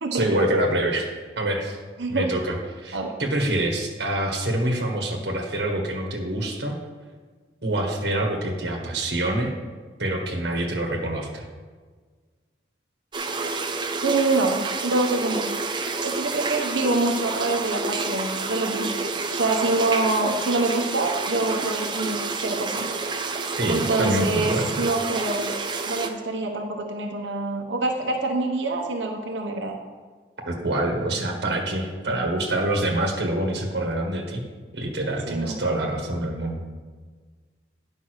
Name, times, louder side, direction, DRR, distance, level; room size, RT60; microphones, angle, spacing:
voice 1, 0.1-1.1 1.4-1.8 2.1-6.8 7.6-9.5 10.0-11.4 23.5-24.7 30.5-34.4 34.7-36.6, right 1 dB, 65° right, 1 dB, 1.4 m, -26 dB
voice 2, 2.0-2.3 2.9-3.1 14.0-15.5 16.0-23.0 23.7-25.5 25.9-29.7 35.3-35.5, right 2 dB, 85° right, 2 dB, 1.0 m, -25 dB
sound 1, 13.1-26.1, right 4 dB, 25° right, 0.6 m, -29 dB
9.6 x 5.3 x 6.4 m, 1.5 s
head